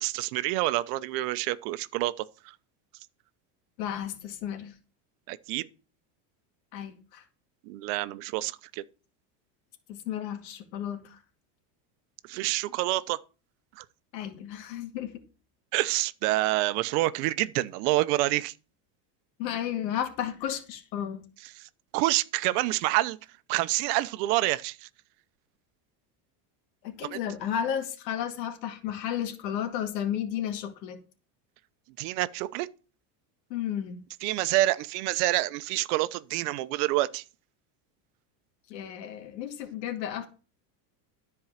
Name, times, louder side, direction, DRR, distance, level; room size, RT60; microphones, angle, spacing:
voice 1, 0.0-2.5 5.3-5.7 7.6-8.8 12.3-13.2 13.8-13.9 15.7-18.5 21.4-23.2 23.5-24.9 27.1-27.2 32.0-32.7 34.2-37.2, right 17 dB, 70° right, 1.0 m, -27 dB
voice 2, 3.8-4.7 6.7-7.2 9.9-11.2 14.1-15.2 19.4-21.2 26.8-31.0 33.5-34.0 38.7-40.3, left 10 dB, 85° left, 2.2 m, -33 dB
13.5 x 4.7 x 7.4 m
supercardioid pair, 125°, 49 cm